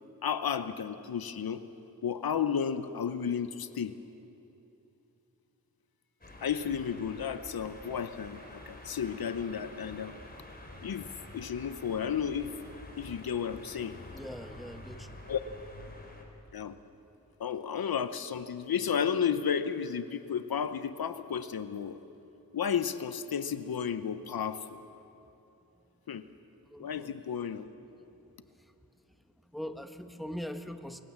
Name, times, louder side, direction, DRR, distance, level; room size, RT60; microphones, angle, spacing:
voice 1, 0.2-1.6 2.0-4.0 6.4-10.1 10.8-12.6 13.0-14.0 15.3-15.4 16.5-16.7 17.4-22.0 22.5-24.8 26.1-26.3 26.8-27.7, left 7 dB, 75° left, 12 dB, 0.8 m, -33 dB
sound 1, 6.2-16.2, left 1 dB, 25° left, 4.2 m, -48 dB
voice 2, 14.1-15.2 26.6-27.2 28.6-28.7 29.5-31.0, equal, ahead, 7 dB, 1.3 m, -42 dB
25.0 x 16.0 x 7.4 m, 2.9 s
cardioid pair, 55°, 37 cm